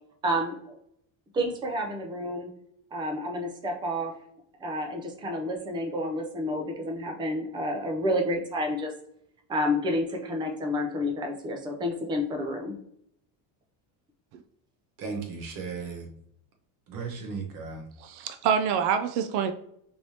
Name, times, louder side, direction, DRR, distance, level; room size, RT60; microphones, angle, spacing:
voice 1, 0.2-0.8 1.3-2.5 2.9-4.1 4.6-8.9 9.5-12.8, left 1 dB, 10° right, 3 dB, 0.4 m, -30 dB
voice 2, 15.0-16.1 16.9-17.8, right 5 dB, 55° right, 2 dB, 1.1 m, -35 dB
voice 3, 18.0-19.5, right 7 dB, 70° right, 7 dB, 0.5 m, -26 dB
4.5 x 3.3 x 2.7 m, 0.73 s
cardioid pair, 170°, 40 cm